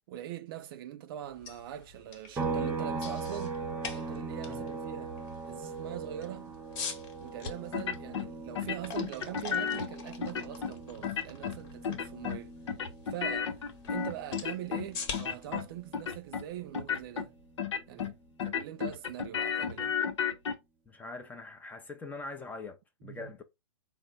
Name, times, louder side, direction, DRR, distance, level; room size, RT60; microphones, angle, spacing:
voice 1, 0.1-3.6 3.9-5.1 5.4-6.5 7.2-12.5 13.1-13.6 13.9-17.3 17.9-18.1 18.4-20.0 23.0-23.3, right 12 dB, 50° right, 0.4 m, -42 dB
sound 1, 1.2-17.2, left 5 dB, 50° left, 1.2 m, -46 dB
sound 2, 2.4-15.9 16.2-18.4, right 4 dB, 10° right, 0.9 m, -41 dB
sound 3, 7.7-8.3 8.6-9.9 10.2-10.7 11.0-11.6 11.8-12.4 12.7-14.9 15.1-15.7 15.9-16.4 16.7-17.3 17.6-18.1 18.4-20.5, left 7 dB, 80° left, 0.7 m, -33 dB
voice 2, 20.9-23.4, left 3 dB, 10° left, 0.6 m, -43 dB
4.2 x 2.1 x 3.8 m
hypercardioid pair, 125°, 15 cm